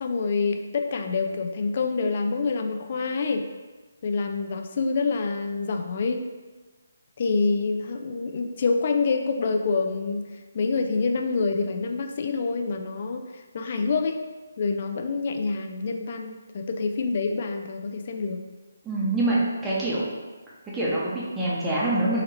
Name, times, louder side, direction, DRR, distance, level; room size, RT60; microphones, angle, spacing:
voice 1, 0.0-3.5 4.0-6.2 7.2-10.3 10.5-14.2 14.6-18.4, left 4 dB, 45° left, 5 dB, 0.3 m, -27 dB
voice 2, 18.8-20.1 20.7-22.2, right 2 dB, 10° right, -7 dB, 0.8 m, -25 dB
3.8 x 2.9 x 2.8 m, 1.3 s
figure-of-eight pair, 150°, 0 cm